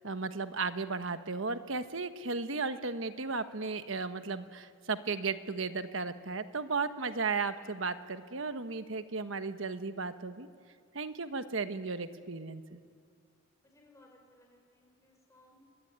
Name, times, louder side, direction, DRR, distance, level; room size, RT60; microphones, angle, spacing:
voice 1, 0.0-10.5 10.9-12.8, right 4 dB, 65° right, 10 dB, 1.2 m, -35 dB
voice 2, 13.6-15.6, left 1 dB, 15° left, 1 dB, 5.1 m, -62 dB
28.0 x 22.0 x 9.4 m, 2.2 s
head